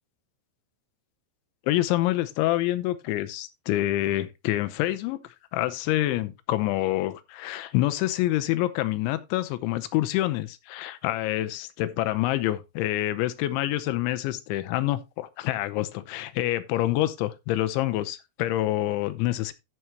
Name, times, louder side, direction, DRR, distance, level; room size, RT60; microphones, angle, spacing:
voice 1, 1.7-5.2 5.5-19.5, left 15 dB, 80° left, 3.1 m, -27 dB
14.0 x 6.3 x 2.9 m
omnidirectional pair, 5.4 m